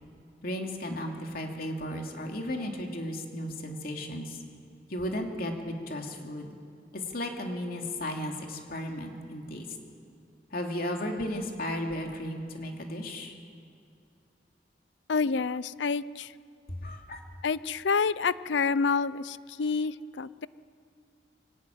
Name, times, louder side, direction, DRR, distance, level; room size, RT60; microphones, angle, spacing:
voice 1, 0.4-4.4 4.9-6.6 6.9-9.7 10.5-13.3 16.7-17.2, left 1 dB, 55° left, 2 dB, 2.7 m, -35 dB
voice 2, 15.1-16.3 17.4-20.5, left 5 dB, 90° left, 18 dB, 0.5 m, -28 dB
22.5 x 18.5 x 9.2 m, 2.5 s
head